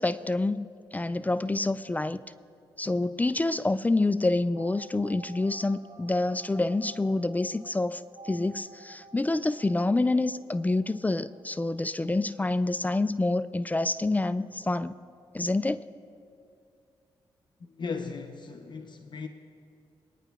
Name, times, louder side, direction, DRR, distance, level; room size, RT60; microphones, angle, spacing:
voice 1, 0.0-2.2 2.8-14.9 15.3-15.9, left 2 dB, 15° left, 14 dB, 0.3 m, -27 dB
sound 1, 4.6-13.0 13.3-13.4 13.6-13.7, right 5 dB, 65° right, 1.1 m, -52 dB
voice 2, 17.6-19.3, left 5 dB, 55° left, 5 dB, 0.6 m, -37 dB
22.5 x 9.9 x 2.3 m, 2.4 s
cardioid pair, 60°, 9 cm